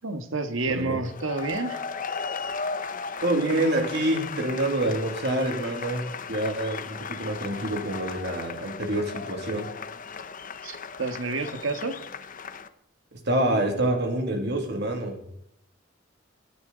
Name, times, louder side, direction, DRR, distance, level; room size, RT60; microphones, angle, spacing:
voice 1, 0.0-1.9 10.6-12.0, right 3 dB, 80° right, 8 dB, 1.8 m, -30 dB
voice 2, 0.7-1.0 3.2-9.7 13.1-15.2, right 1 dB, 60° right, 4 dB, 2.8 m, -27 dB
sound 1, 1.0-12.7, left 5 dB, 45° left, 1.0 m, -36 dB
26.0 x 13.0 x 4.1 m, 0.68 s
head